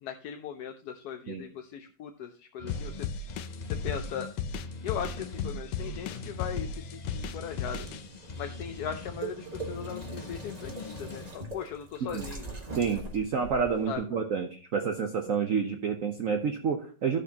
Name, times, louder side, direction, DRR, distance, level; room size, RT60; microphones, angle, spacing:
voice 1, 0.0-3.1 3.7-4.3 4.8-7.9 8.4-12.5 13.9-14.0, left 8 dB, 65° left, 6 dB, 1.0 m, -39 dB
sound 1, 2.6-11.3, left 3 dB, 35° left, 0.7 m, -42 dB
sound 2, 2.7-8.0, left 6 dB, 90° left, 1.4 m, -34 dB
sound 3, 7.8-13.9, right 3 dB, 25° right, 1.2 m, -42 dB
voice 2, 12.8-17.2, right 6 dB, 55° right, 5 dB, 1.0 m, -29 dB
14.0 x 6.3 x 2.8 m, 0.40 s
omnidirectional pair, 2.0 m